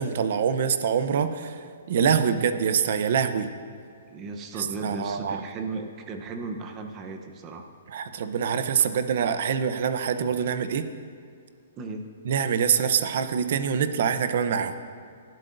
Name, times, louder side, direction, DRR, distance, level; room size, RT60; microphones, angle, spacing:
voice 1, 0.0-1.6 1.9-3.5 4.6-5.4 7.9-10.9 12.2-14.7, right 7 dB, 50° right, 10 dB, 0.7 m, -25 dB
voice 2, 4.1-7.6 11.8-12.1, right 3 dB, 20° right, 5 dB, 0.8 m, -35 dB
24.0 x 12.0 x 2.6 m, 2.2 s
hypercardioid pair, 170°, 0 cm